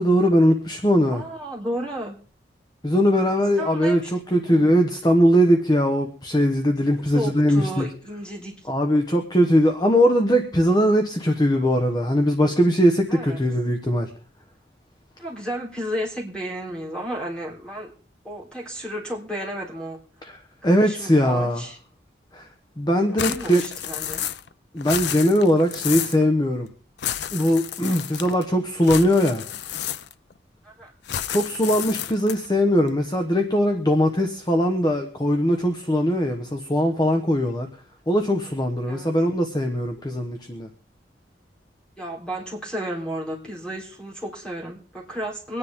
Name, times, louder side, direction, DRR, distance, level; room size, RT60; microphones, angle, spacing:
voice 1, 0.0-1.2 2.8-7.9 8.7-14.1 20.2-20.3 20.6-21.6 22.3-22.5 22.8-23.6 24.7-26.7 27.3-29.4 31.3-37.7 38.1-40.7, equal, 25° left, 4 dB, 1.1 m, -20 dB
voice 2, 1.1-2.1 3.6-4.7 7.1-8.6 13.1-13.4 15.2-17.9 18.2-20.0 20.7-21.8 23.0-24.2 30.6-30.9 38.9-39.1 42.0-45.6, equal, 5° left, -2 dB, 3.5 m, -33 dB
sound 1, 23.2-24.5 24.8-26.2 27.0-28.4 28.8-30.3 31.1-32.5, left 10 dB, 75° left, 0.6 m, -31 dB
24.5 x 9.8 x 3.6 m, 0.41 s
head